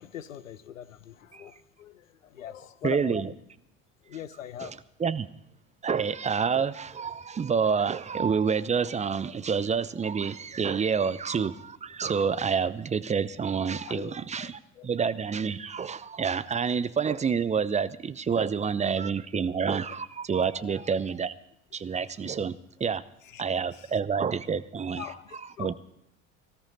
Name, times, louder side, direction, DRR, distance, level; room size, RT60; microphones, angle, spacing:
voice 1, 0.0-3.3 4.1-4.8 13.9-14.9 18.8-18.9 19.3-19.5 20.5-20.8 22.2-22.4 23.2-23.4 23.7-23.9 25.0-25.7, left 10 dB, 80° left, 15 dB, 0.8 m, -42 dB
voice 2, 2.8-3.3 4.6-4.7 5.0-5.3 5.8-21.3 21.7-23.0 23.4-25.1 25.6-25.7, right 6 dB, 20° right, 16 dB, 0.6 m, -28 dB
19.0 x 13.5 x 4.1 m, 0.77 s
figure-of-eight pair, 60°, 39 cm